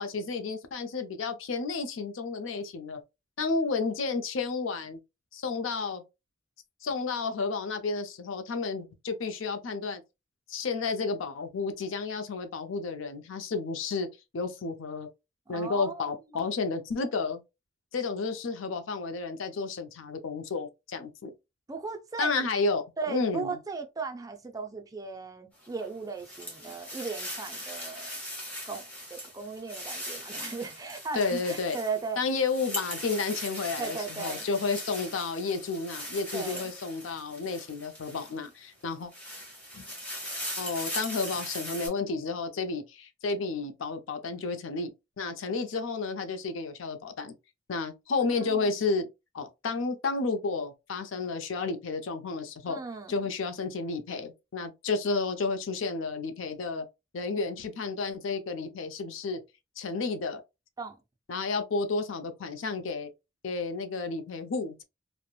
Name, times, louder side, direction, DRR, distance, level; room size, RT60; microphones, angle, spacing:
voice 1, 0.0-3.0 3.4-5.0 5.3-6.0 6.8-10.0 10.5-14.1 14.3-15.1 15.5-17.4 17.9-21.3 22.2-23.6 31.1-31.8 32.2-39.1 40.6-44.9 45.2-47.3 47.7-49.1 49.3-52.8 53.1-56.9 57.1-59.4 59.8-60.4 61.3-63.1 63.4-64.8, left 4 dB, 80° left, 0.5 m, -31 dB
voice 2, 15.5-16.5 21.7-22.3 23.0-28.1 28.7-28.8 29.1-32.2 33.8-34.5 36.3-36.7 48.3-48.7 52.7-53.2 60.8-61.0, right 4 dB, 20° right, 0.4 m, -37 dB
sound 1, 25.6-38.5 38.9-41.9, equal, 10° left, 1.0 m, -40 dB
3.0 x 2.1 x 2.3 m
head